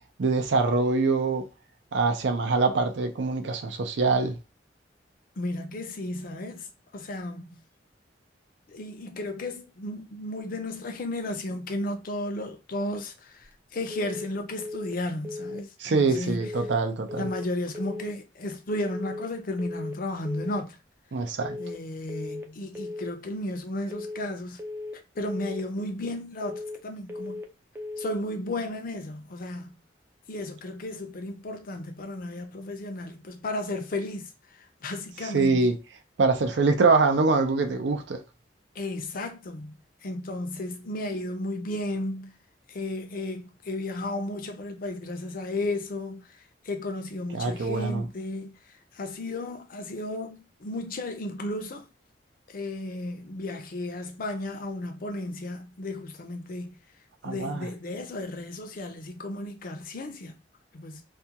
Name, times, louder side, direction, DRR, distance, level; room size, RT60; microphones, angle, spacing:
voice 1, 0.2-1.4 1.9-4.4 15.8-17.3 21.1-21.6 35.2-35.8 36.2-38.2 47.3-48.1 57.2-57.7, right 3 dB, 65° right, 0.5 m, -24 dB
voice 2, 5.4-6.7 6.9-7.6 8.7-13.4 13.7-16.5 17.1-20.8 21.6-24.6 25.2-27.4 28.0-29.7 30.3-34.3 34.8-35.7 38.8-39.7 40.0-42.3 42.7-46.2 46.6-48.6 48.9-51.9 52.5-56.8 57.2-60.4 60.7-61.0, left 1 dB, 50° left, 0.5 m, -34 dB
sound 1, 13.9-14.3 14.6-15.0 15.2-15.6 16.4-16.8 17.1-17.5 17.7-18.1 18.9-19.3 19.6-20.0 20.2-20.6 21.4-21.8 22.1-22.5 22.7-23.1 23.9-24.3 24.6-25.0 25.3-25.6 26.4-26.8 27.1-27.5 27.8-28.2, left 2 dB, 10° right, 0.4 m, -37 dB
2.4 x 2.2 x 2.8 m
head